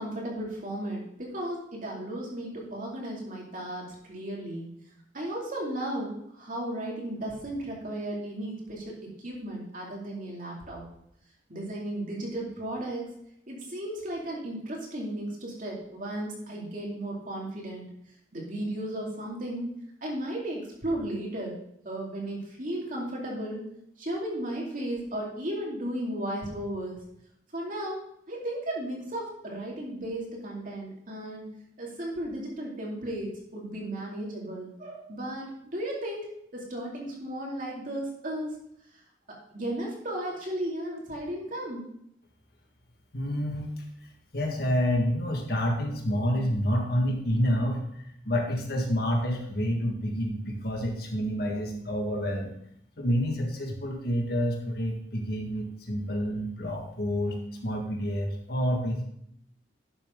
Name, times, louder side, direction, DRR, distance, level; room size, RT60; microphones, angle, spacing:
voice 1, 0.0-4.7 5.1-10.8 11.5-13.1 13.5-17.9 18.3-19.7 20.0-21.6 21.8-23.6 24.0-27.0 27.5-31.5 31.8-38.5 39.5-41.9, right 1 dB, 45° right, -2 dB, 2.7 m, -35 dB
voice 2, 43.1-43.7 44.3-52.5 53.0-59.0, equal, 55° left, 2 dB, 1.8 m, -28 dB
11.0 x 6.9 x 3.8 m, 0.72 s
head